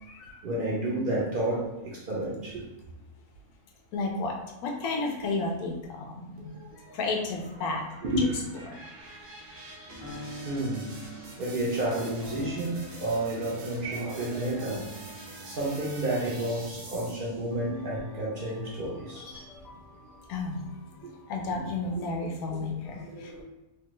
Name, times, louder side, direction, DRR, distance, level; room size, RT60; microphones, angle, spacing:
voice 1, 0.4-2.6 8.0-8.3 9.1-9.2 9.5-11.1 11.4-14.9 15.4-19.6 22.0-22.1 22.9-23.4, right 1 dB, 65° right, -4 dB, 0.5 m, -31 dB
voice 2, 3.9-4.3 4.6-6.5 6.9-8.3 8.7-8.8 19.2-19.5 20.3-20.6 21.3-23.4, left 3 dB, 85° left, 0 dB, 1.1 m, -32 dB
sound 1, 6.4-17.5, right 2 dB, 90° right, 1.2 m, -47 dB
sound 2, 9.9-22.0, left 2 dB, 25° left, 0.5 m, -46 dB
3.1 x 2.2 x 2.9 m, 1.0 s
omnidirectional pair, 1.5 m